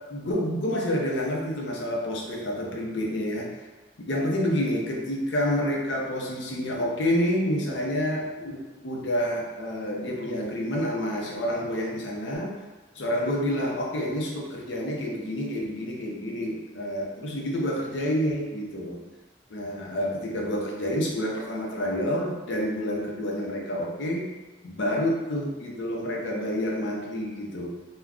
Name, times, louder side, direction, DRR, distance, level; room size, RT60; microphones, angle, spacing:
voice 1, 0.1-3.5 4.0-12.5 12.9-19.0 19.5-24.3 24.6-27.7, equal, 75° left, -2 dB, 0.6 m, -28 dB
3.5 x 2.2 x 2.3 m, 1.3 s
head